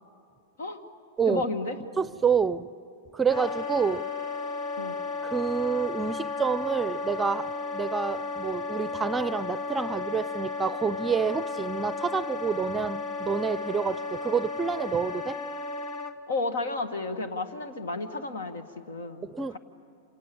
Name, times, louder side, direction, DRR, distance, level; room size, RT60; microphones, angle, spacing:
voice 1, 1.3-1.8 4.8-5.0 16.3-19.6, left 3 dB, 75° left, 9 dB, 1.9 m, -32 dB
voice 2, 2.0-2.7 3.1-4.1 5.2-15.4 19.2-19.6, right 6 dB, 15° right, 18 dB, 0.6 m, -28 dB
Wind instrument woodwind instrument, 3.3-16.1, left 4 dB, 35° left, 1.7 m, -34 dB
28.0 x 27.5 x 7.0 m, 2.5 s
hypercardioid pair, 100°, 0 cm